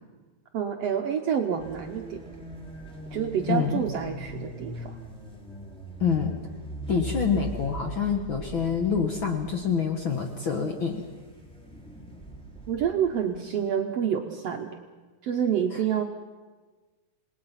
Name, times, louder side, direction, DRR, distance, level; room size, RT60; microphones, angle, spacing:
voice 1, 0.5-2.2 3.1-5.0 12.7-14.8 15.2-16.0, right 8 dB, 65° right, 4 dB, 1.7 m, -28 dB
sound 1, 1.6-13.4, right 1 dB, ahead, 2.7 m, -41 dB
voice 2, 3.5-3.8 6.0-6.3 6.9-11.0 15.7-15.8, left 6 dB, 50° left, 3 dB, 1.7 m, -26 dB
27.5 x 19.5 x 5.8 m, 1.3 s
omnidirectional pair, 3.8 m